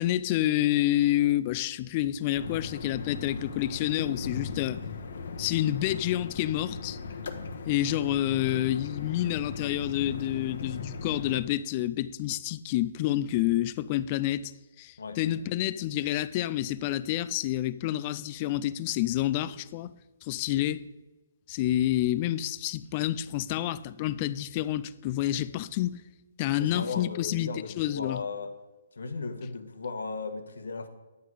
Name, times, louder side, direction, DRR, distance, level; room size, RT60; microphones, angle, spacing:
voice 1, 0.0-4.8 5.4-7.0 7.7-14.5 14.8-19.9 20.2-20.8 21.5-26.0 26.4-27.5 27.8-28.2, left 13 dB, 25° left, 0.3 m, -28 dB
sound 1, 2.3-11.4, left 4 dB, 60° left, 1.1 m, -38 dB
voice 2, 26.5-28.5 28.9-30.9, left 4 dB, 85° left, 1.4 m, -36 dB
11.0 x 8.4 x 4.8 m
hypercardioid pair, 170°, 0 cm